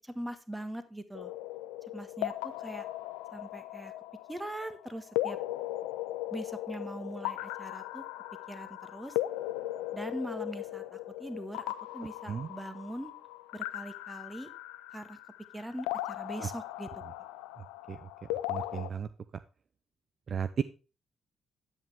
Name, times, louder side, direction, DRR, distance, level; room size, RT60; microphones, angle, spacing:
voice 1, 0.0-1.3 1.9-2.3 2.6-2.8 3.3-3.9 4.3-5.4 6.3-8.0 8.5-9.1 9.9-11.6 11.9-13.1 13.5-14.5 14.9-15.2 15.5-16.9, right 1 dB, 10° right, 9 dB, 1.4 m, -41 dB
sound 1, 1.1-18.9, left 15 dB, 80° left, 0.4 m, -38 dB
voice 2, 17.6-18.1 18.5-19.1 20.3-20.6, right 7 dB, 50° right, 13 dB, 0.4 m, -34 dB
9.0 x 8.0 x 3.5 m, 0.33 s
hypercardioid pair, 40°, 0 cm